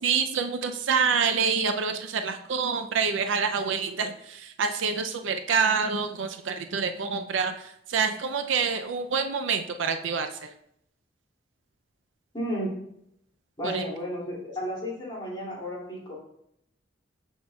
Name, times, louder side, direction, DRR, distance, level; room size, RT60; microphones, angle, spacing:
voice 1, 0.0-10.5 13.6-13.8, right 5 dB, 85° right, 7 dB, 0.5 m, -27 dB
voice 2, 12.3-12.7 13.6-16.1, equal, 25° left, -6 dB, 2.5 m, -33 dB
7.1 x 6.3 x 2.3 m, 0.75 s
head